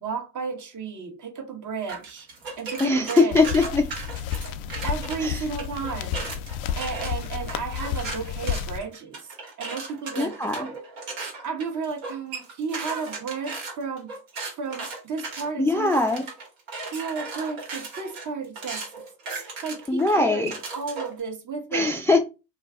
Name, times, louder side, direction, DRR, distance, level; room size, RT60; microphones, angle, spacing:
voice 1, 0.0-2.3 2.6-3.4 4.8-6.2 6.8-9.3 9.6-10.8 11.4-14.1 14.6-16.0 16.9-18.9 19.3-22.0, right 5 dB, 45° right, 0.9 m, -33 dB
sound 1, 1.9-5.2 5.6-21.2, right 3 dB, 75° right, 1.3 m, -36 dB
voice 2, 2.8-3.9 5.2-5.4 10.2-10.6 15.6-16.2 19.9-20.5 21.7-22.2, left 3 dB, 5° left, 0.3 m, -21 dB
sound 2, 3.3-8.8, left 8 dB, 75° left, 0.5 m, -31 dB
2.4 x 2.3 x 3.6 m
hypercardioid pair, 55°, 44 cm